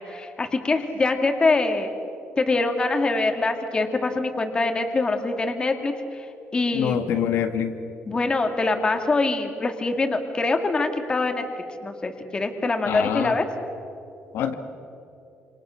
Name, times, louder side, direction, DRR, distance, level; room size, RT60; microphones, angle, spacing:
voice 1, 0.0-1.9 2.4-6.3 6.5-7.0 8.1-11.4 11.8-13.5, left 3 dB, 20° left, 5 dB, 2.2 m, -24 dB
voice 2, 6.7-7.7 12.9-13.3 14.3-14.5, left 9 dB, 80° left, 6 dB, 1.8 m, -25 dB
28.0 x 27.5 x 6.5 m, 2.7 s
cardioid pair, 160°, 4 cm